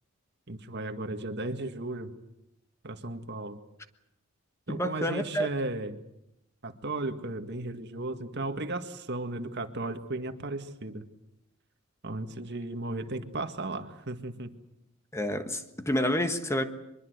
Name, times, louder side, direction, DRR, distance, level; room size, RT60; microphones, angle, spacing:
voice 1, 0.5-2.1 2.8-3.6 4.7-6.0 6.6-11.0 12.0-14.5, right 2 dB, 55° right, 1.9 m, -35 dB
voice 2, 4.7-5.5 15.1-16.6, equal, 15° left, 1.4 m, -29 dB
23.5 x 22.0 x 8.1 m
head